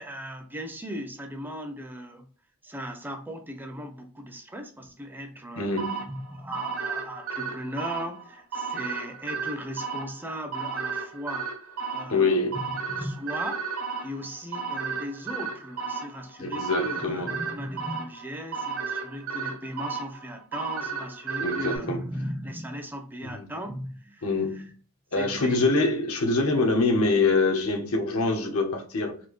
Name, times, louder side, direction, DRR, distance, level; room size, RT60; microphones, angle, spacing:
voice 1, 0.0-2.3 2.6-5.8 6.1-11.5 11.9-13.6 14.0-24.7 25.2-25.7, equal, 10° right, 0.5 m, -37 dB
voice 2, 5.6-6.1 12.1-12.6 16.4-17.4 21.4-22.0 23.3-23.5 24.2-24.7 25.1-29.2, left 3 dB, 75° left, 0.9 m, -25 dB
sound 1, 5.8-21.8, right 5 dB, 75° right, 1.0 m, -34 dB
4.3 x 2.6 x 3.0 m
head